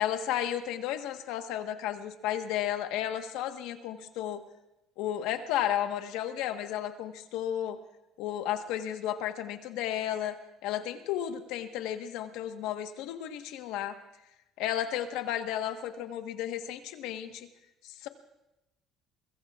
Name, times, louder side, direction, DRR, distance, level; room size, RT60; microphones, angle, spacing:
voice 1, 0.0-4.4 5.0-7.8 8.2-14.0 14.6-17.5 17.8-18.1, left 11 dB, 85° left, 7 dB, 1.3 m, -33 dB
22.5 x 22.5 x 2.4 m, 0.92 s
cardioid pair, 110°, 0 cm